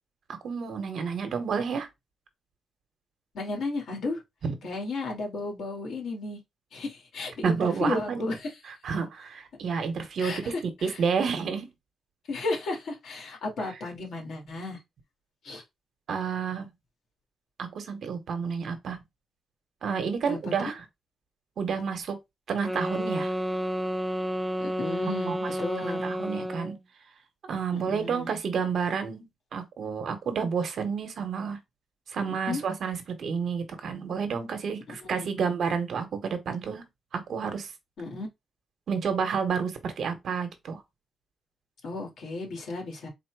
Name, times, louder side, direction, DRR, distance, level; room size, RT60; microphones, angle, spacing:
voice 1, 0.3-1.9 4.4-4.5 7.4-8.3 8.7-11.7 16.1-16.7 17.6-19.0 19.8-20.8 21.6-22.2 22.5-23.3 25.0-26.8 27.4-31.6 32.1-36.8 37.1-37.7 38.9-40.8, right 6 dB, 65° right, 1.0 m, -30 dB
voice 2, 3.3-4.2 4.6-6.4 6.7-8.4 10.2-11.0 12.3-14.8 15.4-15.6 20.2-20.7 24.6-26.0 27.7-28.3 32.2-32.6 35.0-35.3 38.0-38.3 41.8-43.1, left 2 dB, 75° left, 1.9 m, -34 dB
sound 1, 22.6-26.8, equal, ahead, 0.6 m, -31 dB
4.1 x 2.1 x 4.5 m
cardioid pair, 115°, 0 cm